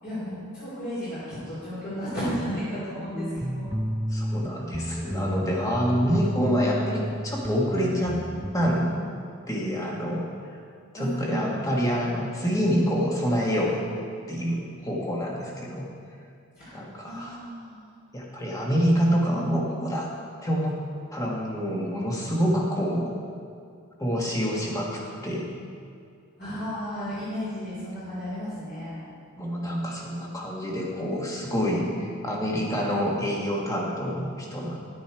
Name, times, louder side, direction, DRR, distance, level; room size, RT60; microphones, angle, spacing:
voice 1, 0.0-3.6 10.9-11.7 16.6-16.8 17.0-17.9 24.5-24.6 26.4-29.1, equal, 45° left, -10 dB, 3.3 m, -33 dB
sound 1, 3.1-4.5 4.7-8.5, equal, 5° right, 0.4 m, -31 dB
voice 2, 4.1-8.2 8.5-9.1 9.5-10.3 11.0-13.8 14.3-15.9 16.7-17.4 18.1-20.1 20.4-20.8 21.1-23.1 24.0-25.5 29.4-34.8, equal, 15° left, -3 dB, 1.5 m, -27 dB
11.5 x 9.6 x 4.5 m, 2.3 s
head